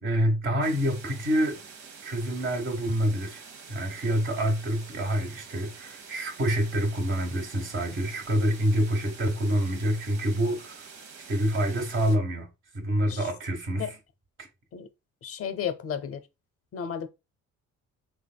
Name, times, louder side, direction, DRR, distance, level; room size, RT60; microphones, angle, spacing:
voice 1, 0.0-1.6 2.0-3.4 3.7-10.8 11.3-12.5 12.7-13.9 14.4-14.5, right 1 dB, 40° right, 1.4 m, -27 dB
sound 1, 0.6-12.2, right 5 dB, 65° right, 0.9 m, -47 dB
voice 2, 15.2-16.2 16.7-17.1, left 8 dB, 50° left, 0.6 m, -33 dB
3.5 x 3.4 x 2.2 m
cardioid pair, 90°, 30 cm